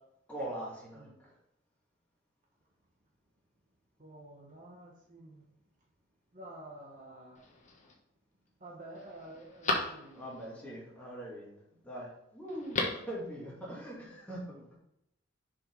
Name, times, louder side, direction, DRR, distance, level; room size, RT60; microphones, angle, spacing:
voice 1, 0.3-1.3 10.1-11.5 11.8-14.8, right 1 dB, 5° left, -6 dB, 2.8 m, -42 dB
voice 2, 4.0-5.5 6.3-7.4 8.6-10.8, right 1 dB, 40° right, -1 dB, 1.1 m, -50 dB
Telephone, 7.3-7.9 8.5-8.6 8.9-10.5 12.5-13.1 13.4-13.5, left 2 dB, 35° left, 1.2 m, -36 dB
6.7 x 5.5 x 4.1 m, 0.81 s
head